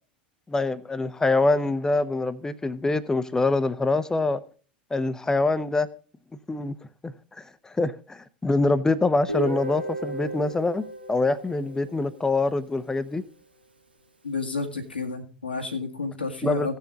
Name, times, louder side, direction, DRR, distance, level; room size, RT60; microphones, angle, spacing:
voice 1, 0.5-4.4 4.9-5.9 6.5-6.7 7.0-13.2 16.4-16.8, left 3 dB, 10° left, 0.9 m, -25 dB
Guitar, 9.3-13.1, right 2 dB, 85° right, 1.5 m, -35 dB
voice 2, 14.2-16.7, left 4 dB, 85° left, 1.9 m, -31 dB
17.0 x 7.0 x 3.9 m
figure-of-eight pair, 80°, 5 cm